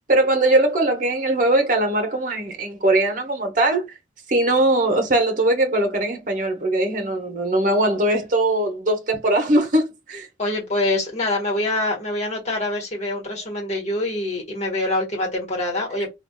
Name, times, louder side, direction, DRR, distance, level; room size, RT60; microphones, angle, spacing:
voice 1, 0.1-4.0 4.3-10.3, right 1 dB, 45° right, 0.7 m, -20 dB
voice 2, 10.4-16.1, left 1 dB, 35° left, 1.3 m, -25 dB
3.3 x 2.3 x 2.2 m
head